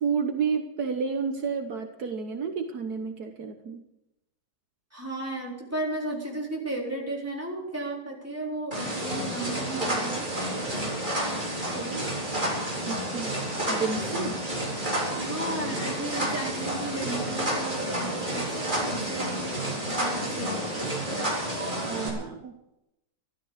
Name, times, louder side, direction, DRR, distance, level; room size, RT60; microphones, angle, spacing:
voice 1, 0.0-3.8 11.8-12.1 12.9-13.4 13.7-14.4 19.3-19.6 21.8-22.6, right 5 dB, 70° right, 6 dB, 1.6 m, -31 dB
voice 2, 4.9-10.3 14.9-18.6 18.8-21.3, right 2 dB, 10° right, -3 dB, 4.0 m, -35 dB
sound 1, 8.7-22.1, right 1 dB, 25° right, 4.0 m, -30 dB
13.5 x 13.0 x 6.6 m, 0.89 s
omnidirectional pair, 1.8 m